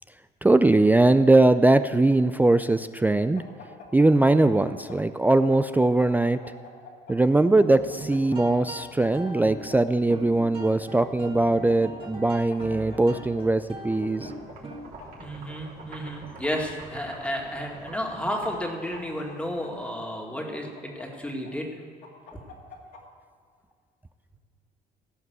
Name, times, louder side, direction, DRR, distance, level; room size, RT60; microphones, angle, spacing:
voice 1, 0.4-3.4 3.9-6.4 7.1-14.3, right 2 dB, 10° right, 11 dB, 0.3 m, -21 dB
sound 1, 3.3-5.0 5.3-7.1 7.6-9.8 10.6-11.7 12.0-12.1 12.5-13.4 14.0-15.1 15.7-16.6 17.4-18.3 18.6-19.9 20.5-21.5 22.0-23.0, left 5 dB, 70° left, 2.5 m, -46 dB
sound 2, 7.7-15.1, right 1 dB, 30° right, 1.9 m, -41 dB
sound 3, 13.7-19.9, right 3 dB, 55° right, 3.4 m, -46 dB
voice 2, 15.2-21.8, equal, 5° left, 0 dB, 2.1 m, -32 dB
17.0 x 5.9 x 8.0 m, 2.2 s
cardioid pair, 110°, 17 cm